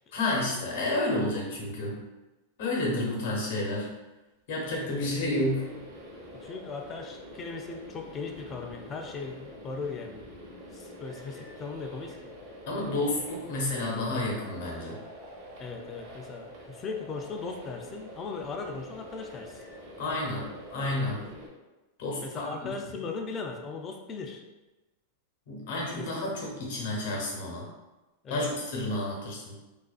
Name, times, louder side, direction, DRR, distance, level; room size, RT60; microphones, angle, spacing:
voice 1, 0.1-2.0 2.6-3.9 4.5-5.7 12.7-15.0 20.0-21.2 22.0-23.0 25.5-27.7 28.3-29.5, left 2 dB, 65° left, -3 dB, 0.8 m, -30 dB
sound 1, 4.6-21.5, equal, 55° right, 0.8 m, -46 dB
voice 2, 6.4-10.2 10.7-12.3 15.6-19.6 22.2-24.4 25.9-26.3 28.2-28.5, left 4 dB, 25° left, 3 dB, 0.3 m, -38 dB
2.4 x 2.2 x 2.3 m, 1.1 s
supercardioid pair, 135°, 0 cm